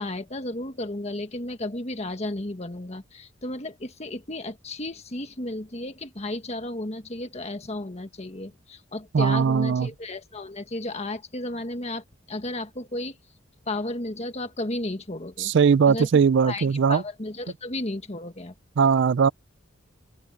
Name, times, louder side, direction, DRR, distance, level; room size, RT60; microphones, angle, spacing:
voice 1, 0.0-13.2 13.7-15.5 15.9-16.1 16.4-18.5, left 2 dB, 35° left, 1.6 m, -33 dB
voice 2, 9.1-9.9 15.4-17.0 18.8-19.3, right 6 dB, 65° right, 0.4 m, -20 dB
open air
head